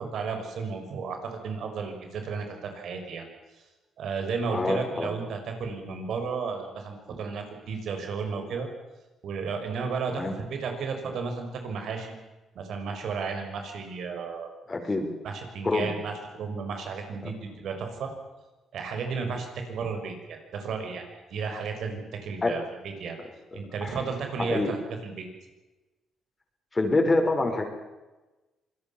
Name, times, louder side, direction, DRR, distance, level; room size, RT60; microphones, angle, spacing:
voice 1, 0.0-3.3 4.0-8.7 9.2-12.2 12.5-14.5 15.2-18.1 18.7-23.2 23.5-24.8 25.0-25.3, right 5 dB, 70° right, 5 dB, 6.3 m, -33 dB
voice 2, 4.5-5.1 10.1-10.3 14.7-15.1 15.6-15.9 22.4-22.6 23.8-24.0 24.4-24.7 26.7-27.6, left 2 dB, 25° left, 4 dB, 5.7 m, -26 dB
26.0 x 20.0 x 7.4 m, 1.1 s
cardioid pair, 90°, 0 cm